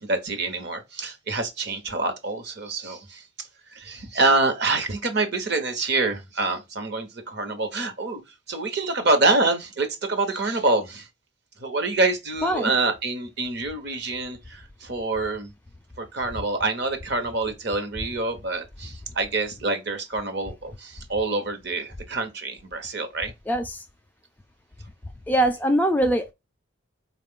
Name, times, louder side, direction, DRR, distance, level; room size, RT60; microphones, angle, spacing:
voice 1, 0.0-3.2 3.7-8.2 8.5-11.1 11.6-15.5 16.0-23.3, right 3 dB, 50° right, 1.0 m, -26 dB
voice 2, 23.5-23.8 25.3-26.3, right 1 dB, 10° left, 0.3 m, -22 dB
4.6 x 2.4 x 3.6 m
head